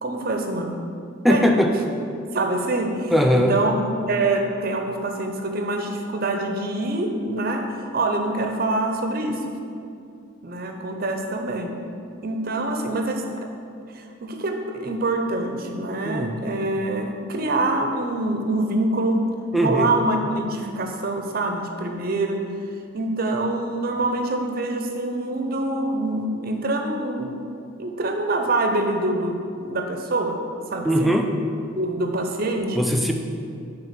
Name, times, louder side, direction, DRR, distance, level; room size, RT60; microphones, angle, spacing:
voice 1, 0.0-0.8 1.2-1.8 2.3-9.5 10.4-11.8 12.2-13.5 13.9-19.3 19.6-22.5 22.9-27.4 27.8-30.4 30.7-31.2 31.8-32.8, right 2 dB, 45° right, 4 dB, 0.6 m, -25 dB
voice 2, 1.2-1.7 3.1-3.6 16.0-16.3 19.5-19.9 30.8-31.3 32.8-33.1, equal, ahead, 2 dB, 0.3 m, -19 dB
6.9 x 3.4 x 5.8 m, 2.5 s
head